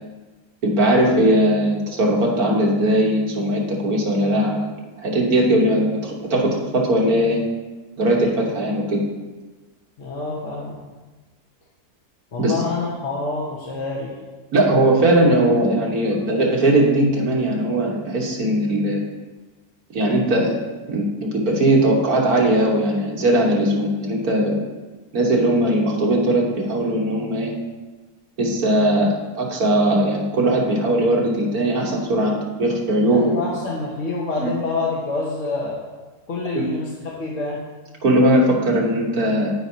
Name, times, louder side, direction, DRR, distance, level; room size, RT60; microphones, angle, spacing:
voice 1, 0.6-4.7 5.0-7.4 8.0-9.0 12.4-12.6 14.5-19.0 19.9-20.6 20.9-24.6 25.1-27.5 28.4-33.4 34.4-34.5 36.6-36.7 38.0-39.5, right 1 dB, 65° right, -2 dB, 1.8 m, -19 dB
voice 2, 10.0-10.8 12.3-14.1 33.1-35.8 36.3-37.6, left 3 dB, 55° left, -4 dB, 1.3 m, -27 dB
14.0 x 4.7 x 2.8 m, 1.2 s
omnidirectional pair, 1.7 m